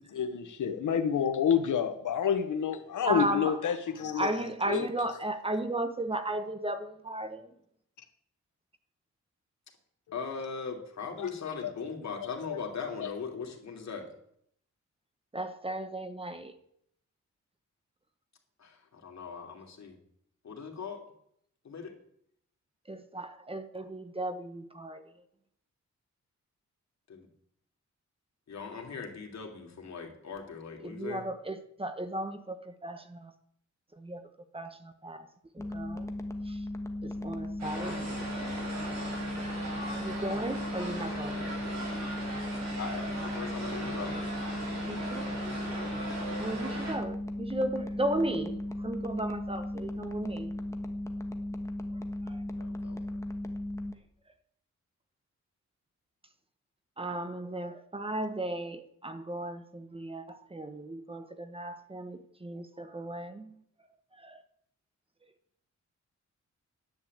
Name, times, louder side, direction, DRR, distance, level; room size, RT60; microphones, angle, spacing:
voice 1, 0.1-4.3 4.7-4.9 11.2-11.3 11.6-11.7 12.2-12.6 13.0-13.1, left 8 dB, 85° left, 1.3 m, -29 dB
voice 2, 3.0-3.6 4.1-7.5 15.3-16.6 22.9-25.1 30.8-33.3 34.0-34.2 34.5-35.3 35.5-36.1 36.5-36.6 37.0-38.0 38.6-38.7 40.0-41.5 44.9-45.4 46.4-50.5 52.3-52.4 57.0-63.6 64.2-64.4, right 1 dB, 20° right, 1.2 m, -35 dB
voice 3, 10.1-14.0 18.6-19.9 20.4-21.0 21.6-21.9 27.1-27.3 28.5-31.2 37.7-38.2 40.6-41.6 42.8-44.2 52.6-53.0, left 5 dB, 65° left, 3.1 m, -40 dB
sound 1, 35.6-53.9, left 1 dB, 10° left, 1.4 m, -36 dB
sound 2, 37.6-47.0, right 1 dB, 60° right, 7.8 m, -39 dB
11.0 x 8.9 x 8.7 m
wide cardioid pair, 130°, 30 cm